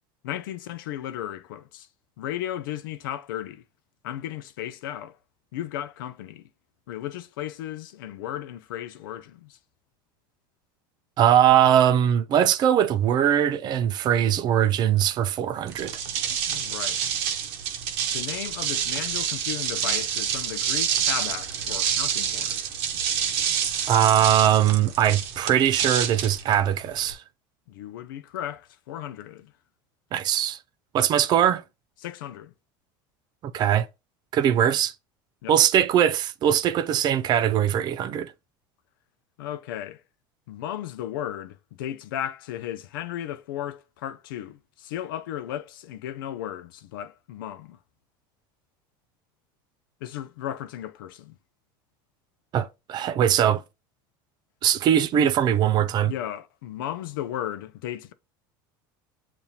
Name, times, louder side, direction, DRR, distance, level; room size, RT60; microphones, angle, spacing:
voice 1, 0.2-1.9 2.2-3.6 4.0-5.2 5.5-6.5 6.9-9.6 16.5-17.2 18.1-22.6 27.7-29.5 32.0-32.5 35.4-35.6 39.4-40.0 40.5-47.8 50.0-51.4 55.8-58.1, left 11 dB, 90° left, 0.5 m, -35 dB
voice 2, 11.2-16.0 23.9-27.2 30.1-30.6 30.9-31.6 33.4-33.9 34.3-34.9 35.5-38.3 52.5-53.6 54.6-56.1, right 10 dB, 40° right, 0.4 m, -21 dB
sound 1, 15.7-27.1, right 8 dB, 65° right, 0.8 m, -28 dB
7.1 x 2.6 x 2.8 m
supercardioid pair, 120°, 11 cm